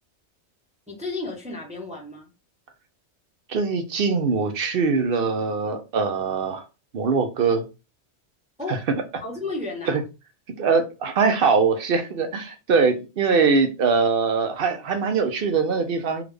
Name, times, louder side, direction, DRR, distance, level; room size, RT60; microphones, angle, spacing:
voice 1, 0.9-2.3 8.6-8.8 9.2-10.0, left 3 dB, 5° right, -2 dB, 0.8 m, -32 dB
voice 2, 3.5-6.6 6.9-7.6 8.7-8.8 9.9-10.0 10.6-16.2, right 5 dB, 60° right, 7 dB, 0.7 m, -22 dB
3.6 x 2.4 x 3.3 m, 0.29 s
omnidirectional pair, 1.2 m